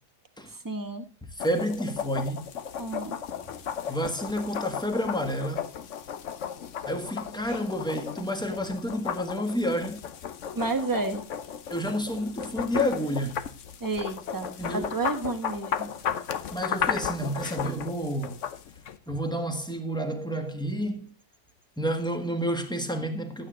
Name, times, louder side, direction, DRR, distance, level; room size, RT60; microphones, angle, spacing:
voice 1, 0.5-1.0 2.8-3.2 10.5-11.2 13.8-15.9, right 3 dB, 15° right, 1.2 m, -31 dB
sound 1, 1.4-19.0, left 8 dB, 55° left, 1.0 m, -35 dB
voice 2, 1.4-2.5 3.9-5.7 6.8-10.0 11.7-13.4 14.6-14.9 16.5-18.4 19.1-21.1 21.8-23.5, equal, 5° left, 1.4 m, -30 dB
11.5 x 9.1 x 3.8 m
omnidirectional pair, 1.7 m